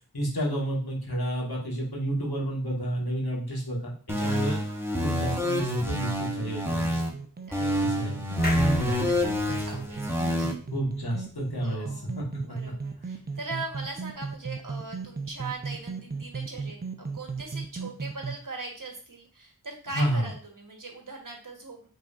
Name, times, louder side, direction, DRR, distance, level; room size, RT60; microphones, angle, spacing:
voice 1, 0.1-4.6 5.0-6.9 7.8-9.1 10.7-11.9 12.2-12.3 19.9-20.3, right 1 dB, 75° left, -3 dB, 1.6 m, -30 dB
sound 1, 4.1-7.1 7.5-10.5, equal, 5° right, 0.9 m, -27 dB
voice 2, 4.2-4.9 7.5-10.6 11.6-21.9, right 3 dB, 55° right, 2 dB, 1.2 m, -41 dB
sound 2, 5.5-18.4, right 4 dB, 25° right, 0.5 m, -37 dB
sound 3, 8.4-11.9 12.3-12.4 12.6-12.7, left 1 dB, 25° left, 1.3 m, -39 dB
5.3 x 3.7 x 2.5 m, 0.41 s
wide cardioid pair, 45°, 38 cm